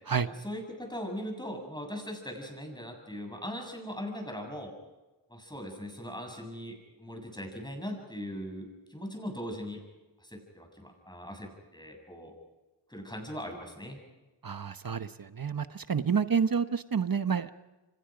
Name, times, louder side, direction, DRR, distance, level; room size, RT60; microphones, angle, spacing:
voice 1, 0.3-4.7 5.3-9.8 10.2-12.3 12.9-14.0, equal, 10° left, 3 dB, 7.4 m, -40 dB
voice 2, 14.4-17.5, right 6 dB, 45° right, 11 dB, 1.0 m, -29 dB
29.0 x 25.5 x 5.1 m, 1.1 s
wide cardioid pair, 65°, 47 cm